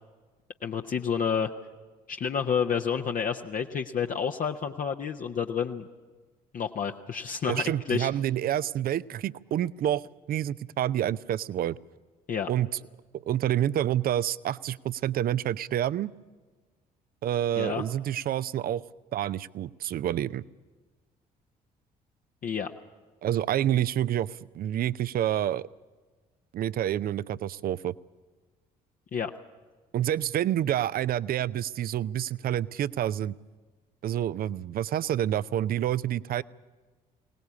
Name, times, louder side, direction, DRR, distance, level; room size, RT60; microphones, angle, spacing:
voice 1, 0.6-1.5 2.1-5.9 6.5-8.1 12.3-12.5 17.6-17.8 22.4-22.7 29.1-29.3, left 7 dB, 40° left, 4 dB, 0.9 m, -29 dB
voice 2, 7.5-11.8 12.5-12.7 13.1-16.1 17.2-18.8 19.1-20.4 23.2-25.7 26.5-27.9 29.9-33.4 34.0-36.4, right 11 dB, 45° right, 18 dB, 0.6 m, -28 dB
21.5 x 18.5 x 8.5 m, 1.4 s
figure-of-eight pair, 45°, 21 cm